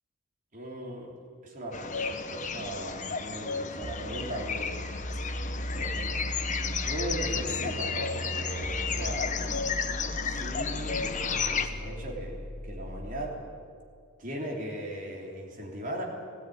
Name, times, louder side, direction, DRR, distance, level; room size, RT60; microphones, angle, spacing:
voice 1, 0.5-1.1 1.4-5.3 5.7-6.3 6.8-9.6 10.2-13.4 14.2-16.0, right 1 dB, 40° right, -1 dB, 3.5 m, -38 dB
sound 1, 1.7-11.7, left 5 dB, 35° left, 1.0 m, -33 dB
sound 2, 3.8-13.4, equal, 90° left, 2.3 m, -37 dB
17.5 x 17.0 x 9.5 m, 2.2 s
head